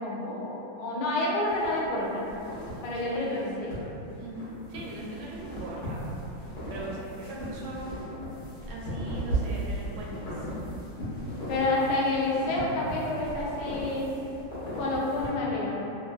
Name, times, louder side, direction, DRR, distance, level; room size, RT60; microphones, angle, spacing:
voice 1, 0.0-2.3 2.8-3.7 11.5-14.1 14.7-15.8, left 2 dB, 85° left, -4 dB, 1.4 m, -29 dB
sound 1, 1.4-15.3, right 1 dB, 55° left, 1.4 m, -37 dB
voice 2, 2.9-3.5 4.2-6.0 6.7-8.3 8.7-10.5, right 1 dB, 80° right, -4 dB, 1.4 m, -40 dB
3.6 x 2.5 x 2.3 m, 3.0 s
omnidirectional pair, 2.3 m